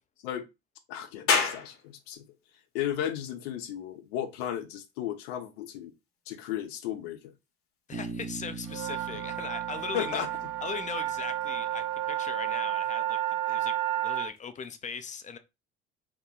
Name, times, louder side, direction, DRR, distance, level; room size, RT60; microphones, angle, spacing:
voice 1, 0.9-2.3 2.7-5.9 6.3-7.3 9.9-10.3, left 10 dB, 75° left, 0.7 m, -34 dB
sound 1, 1.3-14.4, left 5 dB, 45° left, 0.9 m, -39 dB
voice 2, 7.9-10.2 10.6-15.4, left 6 dB, 25° left, 0.5 m, -39 dB
Bass guitar, 7.9-12.0, right 4 dB, 35° right, 0.8 m, -42 dB
sound 2, 8.7-14.3, right 14 dB, 60° right, 0.5 m, -31 dB
2.9 x 2.2 x 3.5 m
hypercardioid pair, 75°, 31 cm